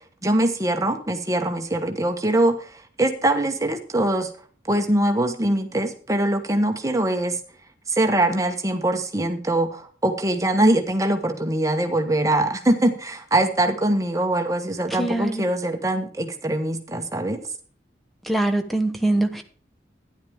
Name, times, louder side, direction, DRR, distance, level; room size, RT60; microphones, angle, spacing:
voice 1, 0.2-4.3 4.7-7.4 7.9-17.4, right 1 dB, 15° right, 1.3 m, -22 dB
voice 2, 15.0-15.5 18.3-19.4, right 2 dB, ahead, 1.0 m, -23 dB
12.5 x 10.5 x 3.6 m
head